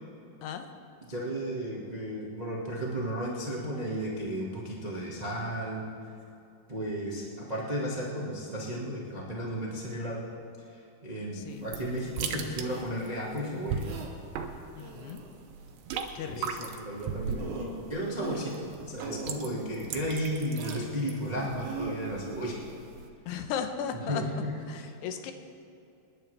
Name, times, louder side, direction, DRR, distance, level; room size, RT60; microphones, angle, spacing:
voice 1, 1.1-5.8 6.7-10.3 10.7-13.9 16.2-22.6 24.0-24.5, equal, 40° right, -5 dB, 0.5 m, -34 dB
voice 2, 11.3-11.6 14.8-15.2 16.1-16.8 23.3-24.2 24.7-25.3, left 7 dB, 85° left, 6 dB, 3.0 m, -36 dB
sound 1, 11.5-23.1, right 6 dB, 85° right, 3.1 m, -39 dB
sound 2, 12.7-12.8 13.8-14.1 14.8-15.3 17.0-17.1 17.4-17.8 18.2-18.7 19.0-19.4 20.5-20.9 21.6-22.0, right 5 dB, 70° right, 3.2 m, -40 dB
27.5 x 11.0 x 3.5 m, 2.6 s
omnidirectional pair, 4.7 m